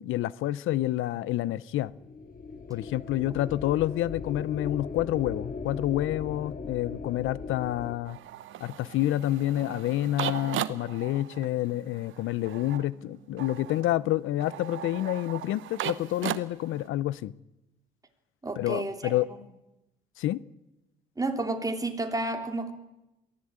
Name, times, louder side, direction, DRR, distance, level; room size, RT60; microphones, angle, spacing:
voice 1, 0.0-1.9 2.7-8.2 8.6-17.3 18.6-19.3 20.2-20.4, left 14 dB, 85° left, 0.7 m, -28 dB
sound 1, 1.9-8.0, left 4 dB, 45° left, 1.9 m, -39 dB
sound 2, 8.1-16.9, right 12 dB, 80° right, 1.0 m, -37 dB
voice 2, 18.4-19.4 21.2-22.7, right 2 dB, 20° right, 3.2 m, -31 dB
22.5 x 15.5 x 8.9 m
cardioid pair, 90°, 20 cm